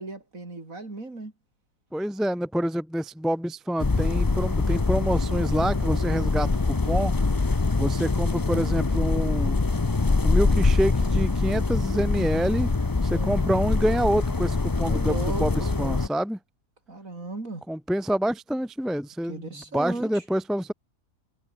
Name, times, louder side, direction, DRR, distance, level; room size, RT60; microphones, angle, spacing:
voice 1, 0.0-1.3 13.1-13.4 14.8-16.0 16.9-17.6 19.3-20.2, right 2 dB, 55° right, 4.7 m, -36 dB
voice 2, 1.9-7.3 7.8-9.6 10.2-12.7 13.0-16.4 17.7-20.7, equal, ahead, 1.0 m, -27 dB
sound 1, 3.8-16.1, left 3 dB, 25° left, 0.4 m, -24 dB
omnidirectional pair, 1.7 m